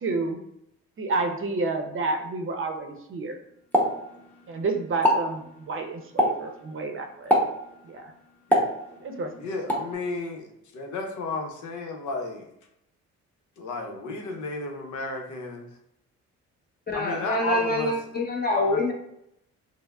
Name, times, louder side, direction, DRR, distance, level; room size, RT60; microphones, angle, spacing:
voice 1, 0.0-0.4 1.0-3.4 4.5-7.4 7.8-8.1 9.0-9.3, right 3 dB, 45° right, 5 dB, 0.6 m, -30 dB
Explosion, 3.7-4.6 4.9-5.3 6.2-6.5 7.3-7.7 8.5-9.2 9.7-9.9, equal, 5° left, 0.8 m, -23 dB
voice 2, 9.3-10.5 10.7-12.5 13.6-15.6 16.9-17.9 18.5-18.8, left 3 dB, 75° left, 2 dB, 0.8 m, -33 dB
voice 3, 16.9-18.9, left 1 dB, 30° left, 1 dB, 0.9 m, -25 dB
5.3 x 2.0 x 2.3 m, 0.77 s
cardioid pair, 90°, 30 cm